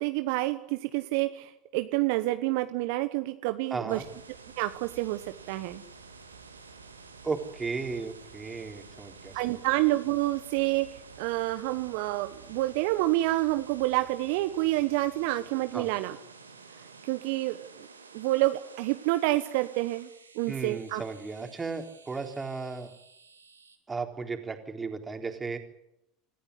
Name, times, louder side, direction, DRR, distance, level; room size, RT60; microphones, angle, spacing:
voice 1, 0.0-4.0 4.6-5.2 5.5-5.8 9.3-16.2 17.1-17.9 18.1-20.1 20.3-21.0, right 18 dB, 60° right, 10 dB, 1.1 m, -28 dB
voice 2, 3.7-4.0 7.2-9.6 15.7-15.9 20.5-22.9 23.9-25.6, right 4 dB, 20° right, 4 dB, 3.9 m, -35 dB
sound 1, 3.9-23.8, right 4 dB, 90° right, 2.5 m, -51 dB
27.0 x 14.5 x 9.7 m, 0.83 s
figure-of-eight pair, 75°, 0 cm